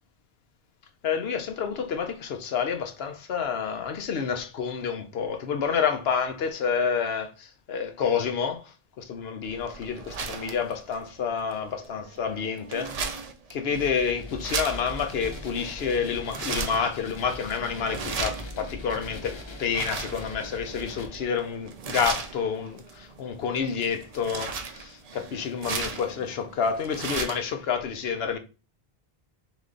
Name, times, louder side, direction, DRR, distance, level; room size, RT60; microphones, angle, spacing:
voice 1, 1.0-8.6 9.0-13.1 13.5-28.4, left 6 dB, 80° left, 0.9 m, -29 dB
sound 1, 9.4-27.5, right 5 dB, 45° right, 0.5 m, -37 dB
sound 2, 13.7-21.1, left 2 dB, 35° left, 0.5 m, -41 dB
3.3 x 3.1 x 3.7 m
omnidirectional pair, 1.0 m